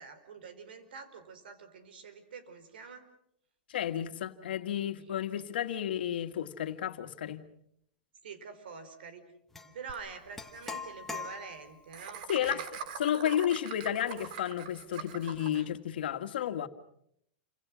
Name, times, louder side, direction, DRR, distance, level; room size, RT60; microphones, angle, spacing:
voice 1, 0.0-3.1 5.0-5.3 8.2-9.3 9.6-12.7 14.9-15.0 15.5-15.7, right 5 dB, 85° right, 4.8 m, -47 dB
voice 2, 3.7-7.5 12.3-12.6 13.0-16.7, left 10 dB, 85° left, 1.8 m, -32 dB
sound 1, 9.5-9.7 10.4-11.8, left 4 dB, 5° left, 1.8 m, -41 dB
Laughter, 9.9-10.0 10.2-10.3 10.5-10.7 11.9-15.6, right 7 dB, 60° right, 2.7 m, -42 dB
29.0 x 26.0 x 6.2 m
supercardioid pair, 150°, 5 cm